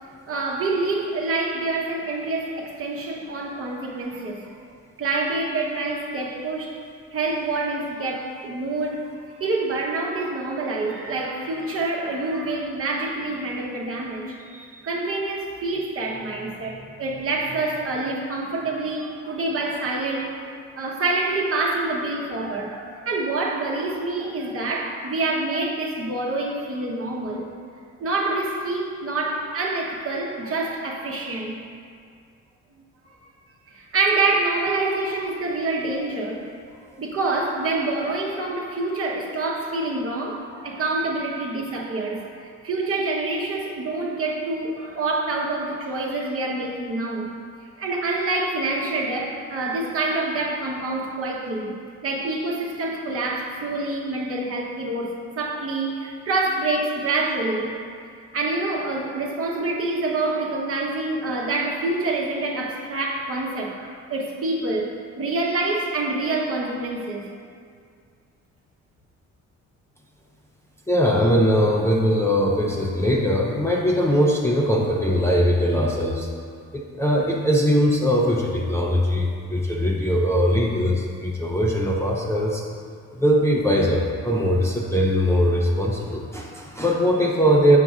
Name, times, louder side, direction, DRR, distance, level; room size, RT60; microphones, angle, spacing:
voice 1, 0.3-4.5 5.0-6.8 7.1-9.1 9.4-27.5 28.0-31.6 33.7-36.5 37.0-47.4 47.8-51.8 52.0-57.8 58.3-67.4, right 2 dB, 50° right, -2 dB, 1.0 m, -26 dB
voice 2, 70.9-76.3 76.7-82.6 83.1-87.8, equal, 10° left, -3 dB, 0.6 m, -21 dB
7.5 x 5.2 x 2.4 m, 2.2 s
cardioid pair, 90°, 30 cm